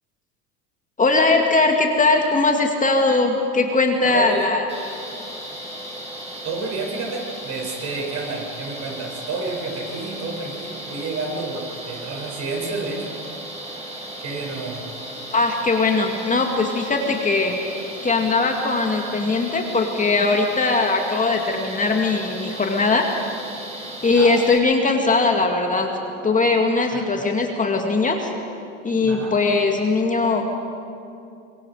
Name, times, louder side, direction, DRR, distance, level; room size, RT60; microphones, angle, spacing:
voice 1, 1.0-4.6 15.3-17.6 18.0-23.1 24.0-25.9 26.2-28.3 28.8-30.5, left 3 dB, 20° left, 2 dB, 2.0 m, -20 dB
voice 2, 4.0-4.6 6.4-13.1 14.2-14.8 24.1-24.3 26.9-27.3 29.0-29.3, right 3 dB, 50° right, 0 dB, 7.0 m, -30 dB
sound 1, 4.7-24.6, right 1 dB, 20° right, 6.3 m, -36 dB
25.5 x 22.0 x 4.9 m, 2.6 s
hypercardioid pair, 85°, 36 cm